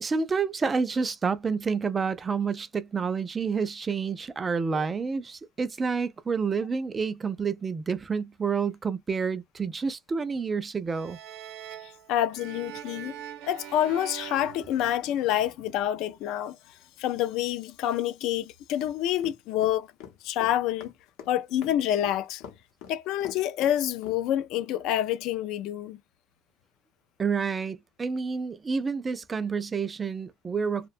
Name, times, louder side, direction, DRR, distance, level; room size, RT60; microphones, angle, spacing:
voice 1, 0.0-11.2 27.2-30.9, right 5 dB, 20° right, 0.3 m, -29 dB
sound 1, 10.9-15.5, right 11 dB, 75° right, 0.5 m, -43 dB
voice 2, 11.8-13.1 13.4-16.6 17.0-19.9 20.2-20.9 21.3-22.4 22.9-26.0, left 11 dB, 60° left, 0.3 m, -27 dB
sound 2, 18.8-24.2, left 8 dB, 85° left, 0.8 m, -44 dB
2.8 x 2.1 x 2.4 m
cardioid pair, 155°, 0 cm